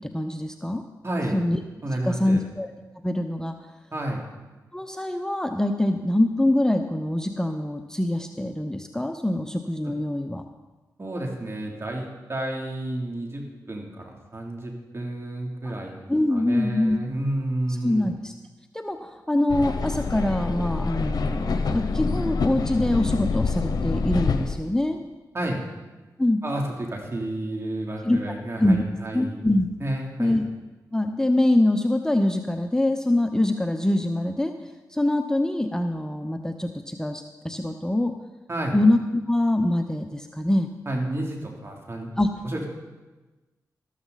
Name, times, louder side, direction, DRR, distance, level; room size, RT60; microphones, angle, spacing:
voice 1, 0.1-0.8 1.3-1.6 2.0-2.7 3.0-3.5 4.7-10.4 16.1-17.0 17.8-18.3 18.7-25.0 26.2-26.4 28.0-28.2 28.6-28.8 29.1-29.7 30.2-30.4 30.9-34.5 34.9-38.1 38.7-40.7 42.2-42.3, left 1 dB, 10° left, 6 dB, 0.9 m, -24 dB
voice 2, 1.0-1.4 1.8-2.4 3.9-4.2 9.8-10.0 11.0-18.1 25.3-25.6 26.4-29.4 29.8-30.4 38.5-38.8 40.9-42.1 42.4-42.7, right 1 dB, 40° right, 0 dB, 3.2 m, -31 dB
sound 1, 19.5-24.6, left 4 dB, 70° left, 1.0 m, -26 dB
13.5 x 13.5 x 4.1 m, 1.2 s
cardioid pair, 50°, 7 cm